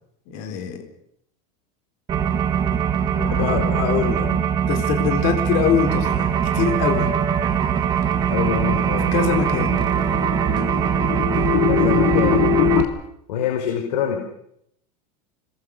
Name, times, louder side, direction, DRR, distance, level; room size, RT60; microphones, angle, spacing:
voice 1, 0.3-0.8 3.3-4.3 4.7-7.1 9.1-9.9, left 7 dB, 45° left, 5 dB, 4.4 m, -23 dB
sound 1, 2.1-12.8, right 8 dB, 20° right, 1.9 m, -21 dB
voice 2, 3.1-4.5 8.3-9.1 11.7-12.4 13.3-14.2, left 8 dB, 80° left, 2 dB, 5.6 m, -26 dB
sound 2, 8.1-12.8, left 14 dB, 65° left, 3.6 m, -23 dB
27.0 x 21.0 x 6.8 m, 0.74 s
supercardioid pair, 175°, 20 cm